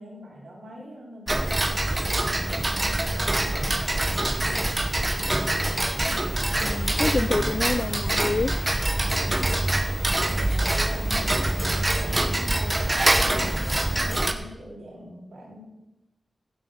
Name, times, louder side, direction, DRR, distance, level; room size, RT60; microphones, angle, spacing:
voice 1, 0.0-3.2 3.6-4.7 10.3-15.6, equal, 65° right, -4 dB, 5.1 m, -43 dB
Tick-tock, 1.3-14.3, right 1 dB, 15° right, 0.9 m, -25 dB
voice 2, 6.6-8.5, left 4 dB, 45° left, 19 dB, 0.4 m, -27 dB
15.0 x 7.9 x 6.4 m, 0.96 s
wide cardioid pair, 145°, 0 cm